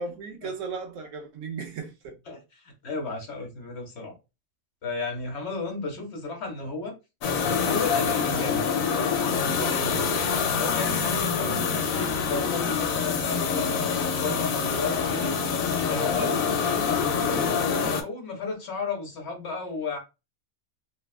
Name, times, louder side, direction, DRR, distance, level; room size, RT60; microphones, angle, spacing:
voice 1, 0.0-2.2, right 4 dB, 75° right, 1.0 m, -36 dB
voice 2, 2.3-4.1 4.8-6.9 7.5-8.7 9.1-10.0 10.4-15.3 15.9-16.3 16.6-17.6 18.0-20.0, left 3 dB, 60° left, 1.1 m, -34 dB
sound 1, 7.2-18.0, left 6 dB, 85° left, 1.0 m, -26 dB
3.3 x 2.3 x 2.3 m
omnidirectional pair, 1.4 m